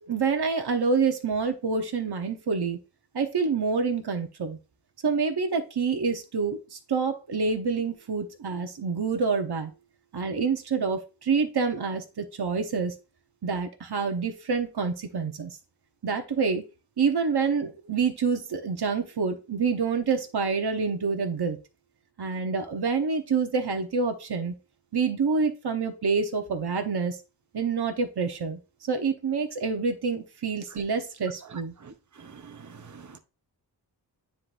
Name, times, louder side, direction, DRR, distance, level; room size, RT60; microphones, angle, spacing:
voice 1, 0.0-2.8 3.1-4.6 5.0-9.7 10.1-12.9 13.4-15.5 16.0-16.6 17.0-21.6 22.2-24.5 24.9-27.2 27.5-28.6 28.9-31.7, right 5 dB, 65° right, 1.0 m, -27 dB
voice 2, 31.8-33.2, right 5 dB, 45° right, 0.8 m, -47 dB
9.6 x 3.8 x 2.5 m
wide cardioid pair, 65°, 42 cm